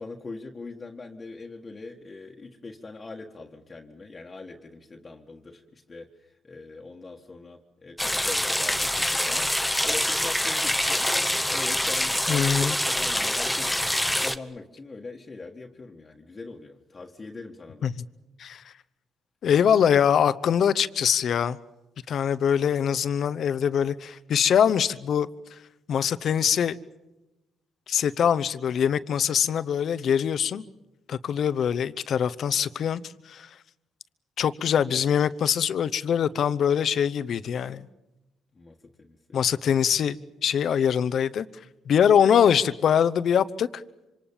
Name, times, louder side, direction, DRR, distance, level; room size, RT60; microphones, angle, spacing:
voice 1, 0.0-11.1 11.5-12.6 12.9-13.7 14.2-17.9 38.6-39.4, left 3 dB, 30° left, 1 dB, 1.6 m, -42 dB
sound 1, 8.0-14.4, left 1 dB, 5° left, 1.1 m, -25 dB
voice 2, 12.3-12.7 17.8-17.9 18.4-18.6 19.4-21.6 22.1-25.3 25.9-26.8 27.9-30.6 31.1-33.5 34.4-37.8 39.3-40.2 40.4-41.5 41.9-43.8, left 8 dB, 60° left, 13 dB, 0.9 m, -23 dB
26.5 x 26.0 x 7.2 m, 0.99 s
cardioid pair, 90°, 0 cm